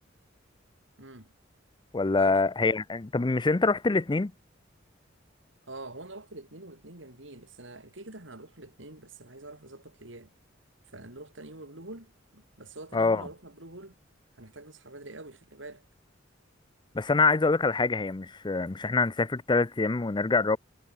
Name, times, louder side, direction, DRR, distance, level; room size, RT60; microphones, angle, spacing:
voice 1, 1.0-1.3 2.2-2.4 5.7-10.3 10.9-14.0 14.4-15.9, right 2 dB, 70° right, 4.4 m, -45 dB
voice 2, 1.9-4.3 12.9-13.2 16.9-20.6, left 3 dB, 25° left, 0.5 m, -25 dB
head